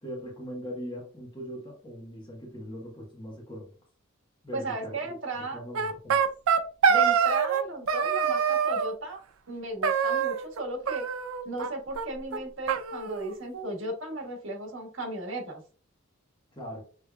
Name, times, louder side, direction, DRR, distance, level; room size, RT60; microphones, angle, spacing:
voice 1, 0.0-3.7 4.4-5.2 5.5-6.2 16.5-16.8, equal, 25° left, -2 dB, 1.2 m, -40 dB
voice 2, 4.5-5.6 6.9-9.2 9.5-11.0 11.4-15.6, right 2 dB, 65° right, 2 dB, 1.6 m, -35 dB
sound 1, 5.7-7.6 7.9-8.9 9.8-10.6 10.9-11.7 12.0-12.1 12.3-12.4 12.7-13.7, right 6 dB, 85° right, 0.5 m, -25 dB
6.4 x 3.3 x 2.3 m, 0.41 s
head